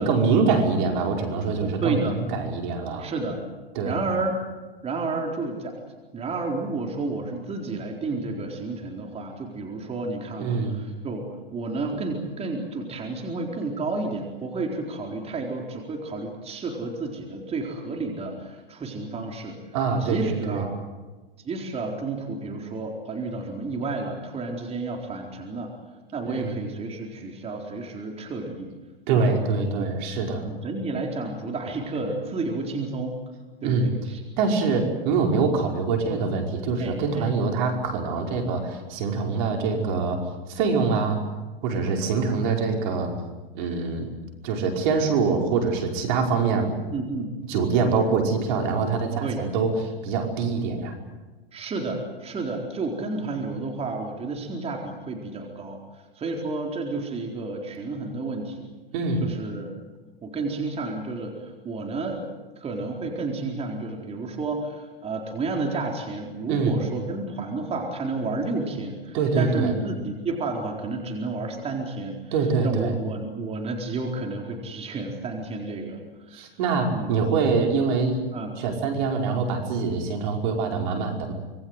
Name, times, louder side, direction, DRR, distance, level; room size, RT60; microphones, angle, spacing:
voice 1, 0.0-3.1 3.8-4.0 10.4-10.8 19.7-20.7 26.3-26.6 29.1-30.5 33.6-33.9 34.4-40.2 40.5-41.2 41.6-43.1 43.5-44.1 44.4-46.7 47.5-49.7 50.0-51.0 58.9-59.2 66.5-66.8 69.1-69.7 72.3-72.9 76.3-78.2 78.6-81.3, right 4 dB, 55° right, 3 dB, 5.3 m, -24 dB
voice 2, 1.6-2.2 3.0-3.4 3.8-4.3 4.8-5.8 6.1-11.2 11.5-19.6 20.0-20.8 21.4-25.7 26.1-28.7 29.1-29.3 29.8-29.9 30.4-33.2 33.6-34.2 34.7-34.8 36.8-37.3 46.9-47.4 49.2-49.4 51.5-58.7 59.2-59.7 60.2-62.2 62.6-72.2 72.6-76.5 76.9-77.1 78.3-78.6, right 3 dB, 20° right, 1 dB, 4.3 m, -31 dB
26.0 x 22.0 x 8.0 m, 1.2 s
hypercardioid pair, 110°, 29 cm